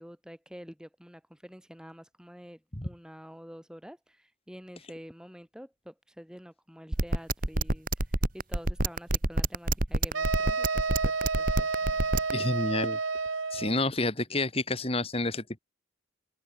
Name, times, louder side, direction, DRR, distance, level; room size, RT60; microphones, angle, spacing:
voice 1, 0.0-7.9 8.3-12.2, equal, 5° right, 5.4 m, -48 dB
sound 1, 6.9-12.3, right 2 dB, 40° right, 2.4 m, -26 dB
sound 2, 10.1-13.8, right 4 dB, 70° right, 1.7 m, -30 dB
voice 2, 12.3-13.0 13.5-15.6, left 2 dB, 30° left, 2.6 m, -29 dB
head